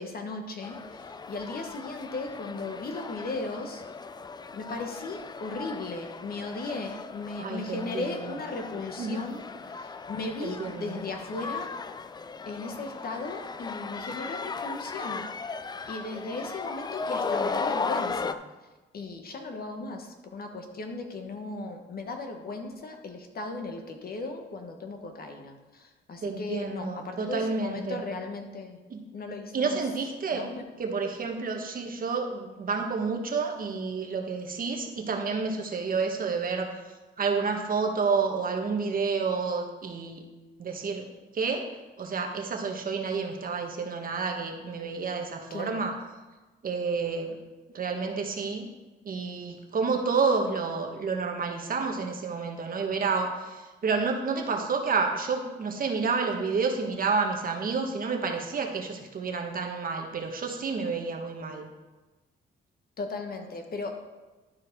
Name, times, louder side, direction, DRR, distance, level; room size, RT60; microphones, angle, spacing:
voice 1, 0.0-3.8 4.5-11.7 12.5-15.2 15.9-18.4 18.9-28.8 29.1-29.8 30.3-30.6 45.5-45.9 63.0-63.9, left 3 dB, 50° left, 4 dB, 1.3 m, -36 dB
sound 1, 0.6-18.3, left 4 dB, 20° left, 0.4 m, -36 dB
voice 2, 7.4-8.2 9.0-9.2 10.4-11.0 26.2-28.0 28.9-29.0 29.5-30.4 30.8-36.8 37.2-40.2 40.6-41.1 41.3-41.6 42.0-45.9 46.6-47.3 47.7-48.7 49.0-61.7, right 4 dB, 45° right, 3 dB, 1.3 m, -29 dB
11.5 x 4.7 x 4.6 m, 1.2 s
cardioid pair, 90°, 20 cm